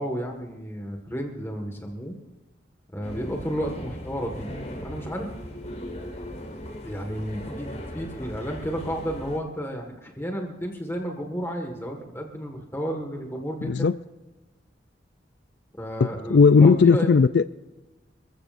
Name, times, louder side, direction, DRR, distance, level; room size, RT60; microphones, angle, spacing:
voice 1, 0.0-2.1 2.9-4.5 4.8-5.3 6.8-13.9 15.8-17.1, equal, 15° left, 2 dB, 1.7 m, -32 dB
sound 1, 3.0-9.4, equal, 40° left, 4.2 m, -38 dB
voice 2, 13.6-13.9 16.0-17.4, left 5 dB, 65° left, 13 dB, 0.4 m, -17 dB
27.0 x 15.0 x 2.6 m, 1.1 s
head